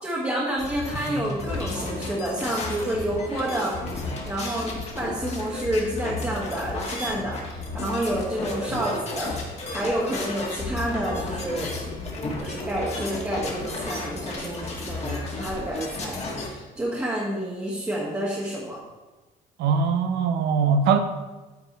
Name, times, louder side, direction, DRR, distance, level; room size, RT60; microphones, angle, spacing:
voice 1, 0.0-3.8 4.2-9.3 9.7-12.0 12.4-18.8, right 1 dB, 15° right, -5 dB, 1.4 m, -29 dB
sound 1, 0.6-16.5, left 2 dB, 40° left, 1.6 m, -33 dB
voice 2, 19.6-21.0, right 5 dB, 80° right, 8 dB, 0.7 m, -21 dB
8.9 x 3.9 x 4.1 m, 1.2 s
cardioid pair, 110°, 17 cm